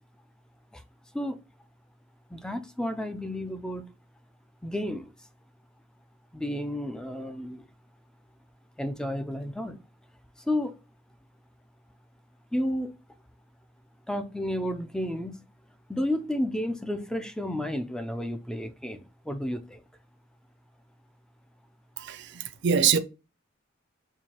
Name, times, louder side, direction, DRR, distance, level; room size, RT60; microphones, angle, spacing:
voice 1, 2.3-3.8 4.6-5.1 6.3-7.6 8.8-9.8 10.4-10.7 12.5-12.9 14.1-15.4 15.9-19.8, left 1 dB, 5° left, 0.3 m, -31 dB
voice 2, 22.0-23.0, right 7 dB, 60° right, 0.4 m, -24 dB
4.5 x 2.6 x 2.8 m
head